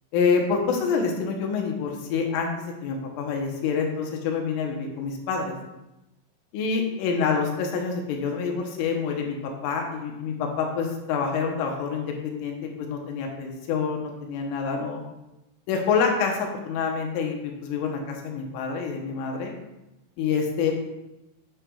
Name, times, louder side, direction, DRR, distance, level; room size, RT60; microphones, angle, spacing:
voice 1, 0.1-5.5 6.5-15.0 15.7-19.5 20.2-20.7, left 5 dB, 80° left, 1 dB, 3.4 m, -27 dB
8.3 x 7.5 x 2.3 m, 0.95 s
omnidirectional pair, 5.7 m